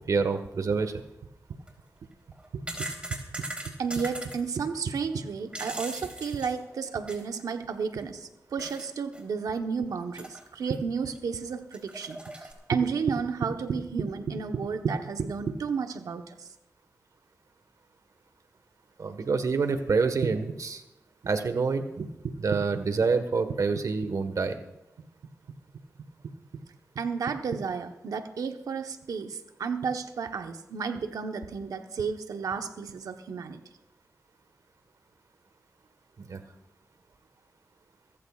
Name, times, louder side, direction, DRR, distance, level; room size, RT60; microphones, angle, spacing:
voice 1, 0.1-0.9 19.0-20.8 21.2-22.1 22.4-24.6 36.2-36.4, right 4 dB, 70° right, 8 dB, 1.5 m, -27 dB
sound 1, 1.5-1.7 2.3-4.4 5.2-7.4 7.7-7.8 8.6-8.9 9.1-9.2 10.1-10.8 11.1-11.2 11.7-12.5, right 1 dB, 20° right, 3.7 m, -39 dB
voice 2, 2.5-2.9 3.8-16.5 22.2-22.3 26.2-26.3 26.9-33.6, right 5 dB, 85° right, 7 dB, 1.1 m, -32 dB
23.0 x 14.5 x 2.4 m, 0.94 s
cardioid pair, 50°, 6 cm